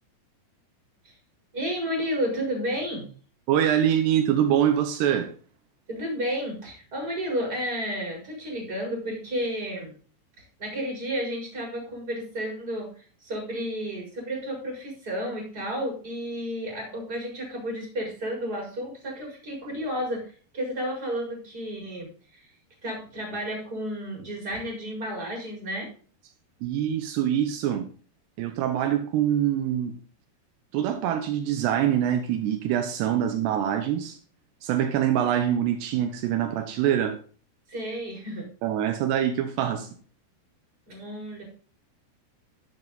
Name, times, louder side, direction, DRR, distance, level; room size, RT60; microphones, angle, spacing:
voice 1, 1.5-3.1 5.9-9.9 10.6-22.5 22.8-25.9 37.7-38.5 40.9-41.4, equal, 20° right, 5.1 m, -32 dB
voice 2, 3.5-5.3 26.6-27.9 28.4-29.9 30.7-34.2 34.6-37.2 38.6-39.9, right 10 dB, 85° right, 3.0 m, -24 dB
12.0 x 7.5 x 4.0 m
omnidirectional pair, 4.8 m